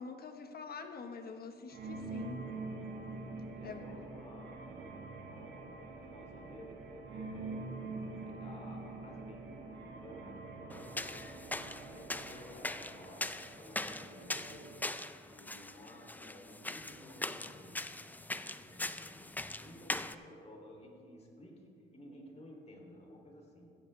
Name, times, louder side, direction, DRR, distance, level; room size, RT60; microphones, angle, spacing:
voice 1, 0.0-2.4 3.6-3.9, left 5 dB, 50° left, 7 dB, 1.3 m, -45 dB
sound 1, 1.7-15.0, right 3 dB, 65° right, 2.0 m, -45 dB
voice 2, 3.5-7.7 8.2-14.7 15.2-17.9 18.5-23.8, left 1 dB, 35° left, 0 dB, 3.0 m, -54 dB
sound 2, 10.7-20.1, left 2 dB, 10° left, 0.5 m, -41 dB
16.0 x 14.0 x 3.3 m, 2.6 s
cardioid pair, 90°, 20 cm